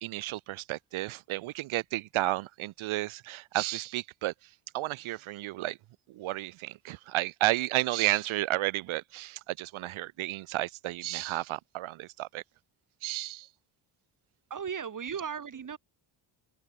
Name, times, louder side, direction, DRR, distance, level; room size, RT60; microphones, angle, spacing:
voice 1, 0.0-5.8 6.1-12.4 13.0-13.5, right 17 dB, 80° right, 0.9 m, -32 dB
voice 2, 14.5-15.8, right 7 dB, 40° right, 6.8 m, -36 dB
open air
cardioid pair, 145°, 48 cm